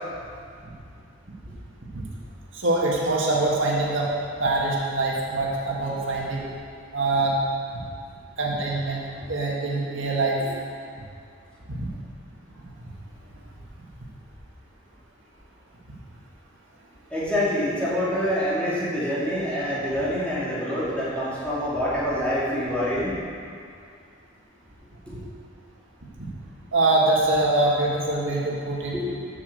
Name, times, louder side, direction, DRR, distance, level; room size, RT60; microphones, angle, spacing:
voice 1, 2.5-4.1 4.4-6.4 6.9-7.4 7.7-7.8 8.4-9.0 9.3-10.4 11.7-11.9 26.2-26.3 26.7-28.9, right 2 dB, 80° right, -4 dB, 1.7 m, -24 dB
voice 2, 17.1-23.1 28.9-29.1, equal, 5° left, -10 dB, 2.5 m, -26 dB
7.2 x 6.6 x 7.9 m, 2.3 s
head